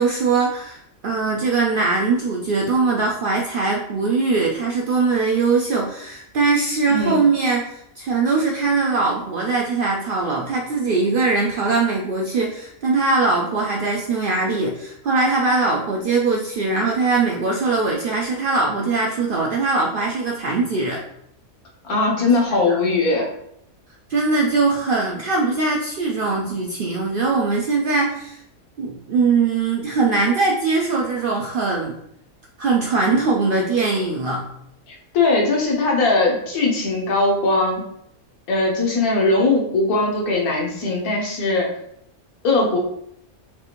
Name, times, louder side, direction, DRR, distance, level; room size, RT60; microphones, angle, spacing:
voice 1, 0.0-21.0 22.5-22.8 24.1-28.4 28.8-32.0 32.6-34.5, right 3 dB, 80° right, -1 dB, 0.4 m, -21 dB
voice 2, 21.8-23.3 34.9-37.8 38.5-41.7 42.4-42.8, left 3 dB, 85° left, -1 dB, 1.4 m, -20 dB
5.4 x 2.5 x 3.0 m, 0.73 s
omnidirectional pair, 1.5 m